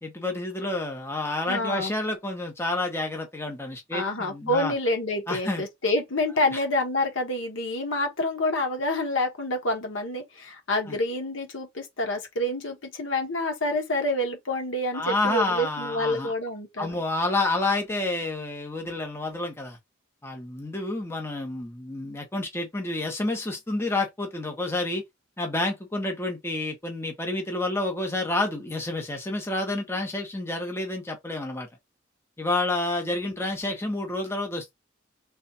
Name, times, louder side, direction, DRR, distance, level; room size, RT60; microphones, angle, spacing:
voice 1, 0.0-4.7 5.3-5.6 10.9-11.0 14.9-16.3 16.8-19.8 20.2-25.0 25.4-31.7 32.4-34.7, left 2 dB, 15° left, 0.9 m, -29 dB
voice 2, 1.5-1.9 3.9-17.0, left 1 dB, 85° left, 1.2 m, -27 dB
3.4 x 2.4 x 4.0 m
head